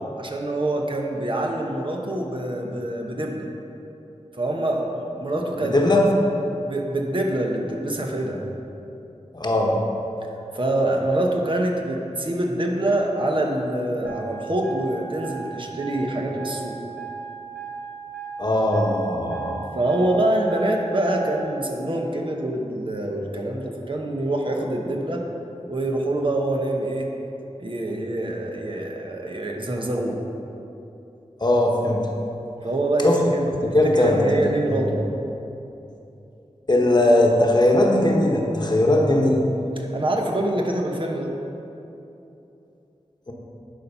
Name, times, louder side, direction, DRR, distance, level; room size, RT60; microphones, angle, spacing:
voice 1, 0.0-3.5 4.3-5.7 6.1-6.2 6.6-8.4 10.5-16.8 19.7-25.2 25.7-27.1 27.6-30.2 32.6-35.0 39.8-41.3, right 1 dB, 45° right, 1 dB, 0.9 m, -25 dB
voice 2, 5.6-6.0 9.3-9.8 18.4-19.7 31.4-32.0 33.0-33.2 33.6-34.8 36.7-39.4 43.3-43.4, left 1 dB, 35° left, 0 dB, 1.1 m, -19 dB
sound 1, 14.0-21.6, right 6 dB, 25° right, 2.0 m, -37 dB
11.0 x 4.3 x 5.5 m, 2.9 s
wide cardioid pair, 80°, 12 cm